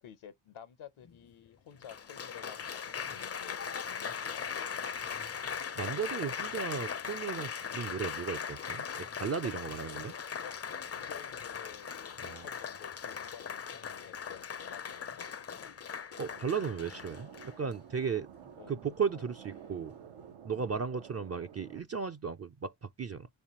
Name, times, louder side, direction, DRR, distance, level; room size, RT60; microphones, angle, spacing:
voice 1, 0.0-4.7 7.6-7.9 10.4-10.6 10.9-15.8 18.6-18.7 19.1-19.3 20.5-20.7 22.0-22.1, left 9 dB, 70° left, 0.7 m, -52 dB
Applause, 1.1-1.2 1.8-17.7 18.5-18.8, left 7 dB, 30° left, 0.4 m, -39 dB
voice 2, 5.7-10.1 12.2-12.5 16.2-18.3 18.7-20.0 20.4-23.3, right 6 dB, 35° right, 0.4 m, -35 dB
sound 1, 16.2-21.8, right 8 dB, 85° right, 0.7 m, -52 dB
3.6 x 3.1 x 2.8 m
cardioid pair, 55°, 50 cm